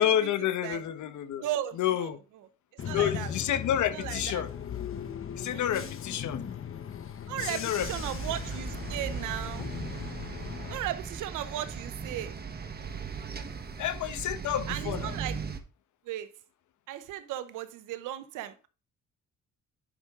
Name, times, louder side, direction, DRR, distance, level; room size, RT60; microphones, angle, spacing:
voice 1, 0.0-1.4 1.8-2.2 2.9-4.5 5.3-6.4 7.4-7.9 13.8-15.1, left 10 dB, 75° left, 1.1 m, -29 dB
voice 2, 1.4-2.2 2.8-3.3 3.9-4.4 5.5-5.9 7.3-9.7 10.7-12.3 14.7-15.4 16.1-16.3 16.9-18.7, right 12 dB, 90° right, 0.8 m, -36 dB
Bus / Engine, 2.8-10.8, left 8 dB, 45° left, 1.0 m, -38 dB
sound 1, 7.8-15.6, right 5 dB, 30° right, 1.3 m, -38 dB
10.0 x 5.2 x 3.7 m
cardioid pair, 90°, 30 cm